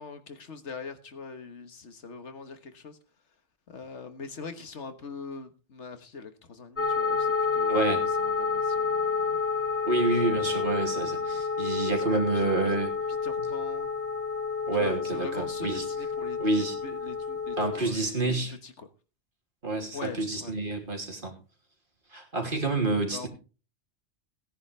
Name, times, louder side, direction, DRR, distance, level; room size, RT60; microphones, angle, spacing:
voice 1, 0.0-3.0 3.7-9.4 10.2-11.4 12.1-12.7 13.2-13.9 14.8-16.4 16.8-18.2 18.6-18.9 19.9-20.5 23.1-23.3, left 4 dB, 75° left, 1.7 m, -42 dB
sound 1, 6.8-17.8, left 5 dB, 10° left, 2.4 m, -29 dB
voice 2, 7.7-8.0 9.8-12.9 14.7-15.8 16.4-16.8 17.6-18.5 19.6-21.3 22.1-23.3, right 2 dB, 45° right, 3.1 m, -28 dB
17.0 x 10.5 x 3.4 m
omnidirectional pair, 1.2 m